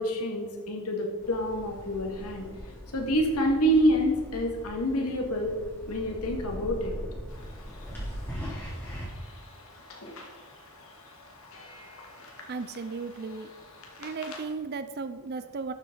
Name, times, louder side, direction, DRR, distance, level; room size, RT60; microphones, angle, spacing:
voice 1, 0.0-2.5 2.9-5.6 5.9-7.0, equal, 80° left, 1 dB, 2.1 m, -27 dB
sound 1, 1.2-9.1, equal, 10° left, 3.5 m, -40 dB
sound 2, 7.3-14.5, left 2 dB, 65° left, 1.7 m, -49 dB
voice 2, 12.5-13.5 14.0-15.7, right 4 dB, 45° right, 11 dB, 0.5 m, -35 dB
13.0 x 7.2 x 4.0 m, 1.5 s
head